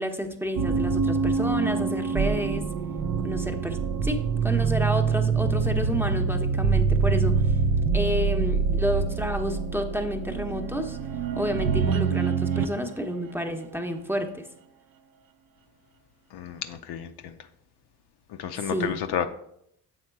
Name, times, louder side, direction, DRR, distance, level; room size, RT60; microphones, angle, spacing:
voice 1, 0.0-2.6 3.2-7.5 7.9-11.0 11.4-14.5 18.7-19.0, equal, 5° right, 4 dB, 0.9 m, -30 dB
sound 1, 0.5-12.8, right 5 dB, 45° right, 0.6 m, -25 dB
voice 2, 16.3-17.4 18.3-19.3, left 8 dB, 55° left, 8 dB, 0.6 m, -31 dB
7.5 x 3.6 x 4.6 m, 0.74 s
hypercardioid pair, 50°, 47 cm